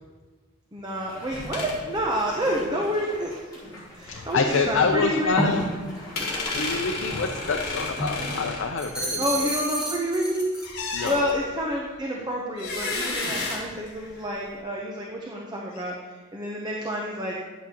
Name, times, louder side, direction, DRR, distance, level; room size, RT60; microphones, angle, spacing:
voice 1, 0.7-3.3 3.9-5.7 8.2-8.4 9.2-10.5 11.0-15.9 16.3-17.4, equal, 20° right, -1 dB, 0.8 m, -28 dB
sound 1, 0.8-8.5, equal, 20° left, 2.7 m, -35 dB
sound 2, 1.3-1.8 6.2-9.4 10.6-11.5 12.6-14.3, left 3 dB, 55° left, 1.7 m, -32 dB
voice 2, 4.1-5.6 6.2-9.5 10.9-11.3 15.7-15.8, left 4 dB, 70° left, 3 dB, 0.6 m, -27 dB
sound 3, 8.8-10.7 11.0-11.3, right 1 dB, 5° right, 1.5 m, -32 dB
10.0 x 8.4 x 2.9 m, 1.4 s
head